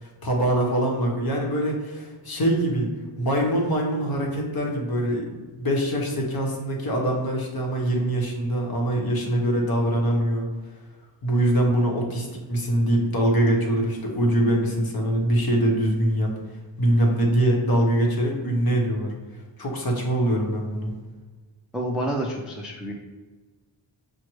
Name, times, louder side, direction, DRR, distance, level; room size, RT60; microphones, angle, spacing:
voice 1, 0.0-2.9 3.2-5.2 5.6-10.5 11.2-16.3 16.8-19.1 19.6-20.9, right 1 dB, 45° left, -1 dB, 1.0 m, -23 dB
voice 2, 21.7-22.9, right 1 dB, ahead, 0 dB, 0.3 m, -28 dB
6.0 x 2.2 x 3.0 m, 1.3 s
wide cardioid pair, 135°, 49 cm